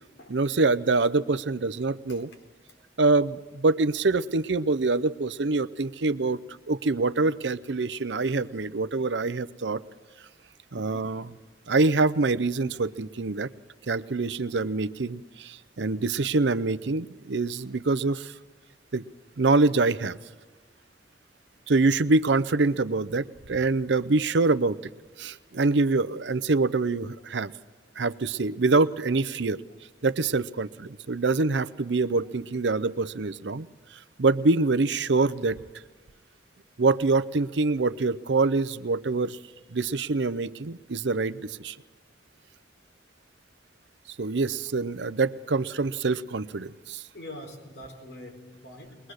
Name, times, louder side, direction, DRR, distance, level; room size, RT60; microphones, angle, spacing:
voice 1, 0.3-2.3 3.0-6.4 6.7-9.8 10.7-11.3 11.7-13.5 13.9-18.3 18.9-19.0 19.4-20.2 21.7-24.8 25.2-27.5 28.0-29.6 30.0-33.7 34.2-35.6 36.8-39.4 39.7-41.7 44.2-47.0, right 3 dB, 80° right, 15 dB, 0.7 m, -25 dB
voice 2, 10.8-11.1 47.1-49.1, left 1 dB, 75° left, 3 dB, 4.4 m, -44 dB
22.0 x 21.5 x 6.5 m, 1.4 s
head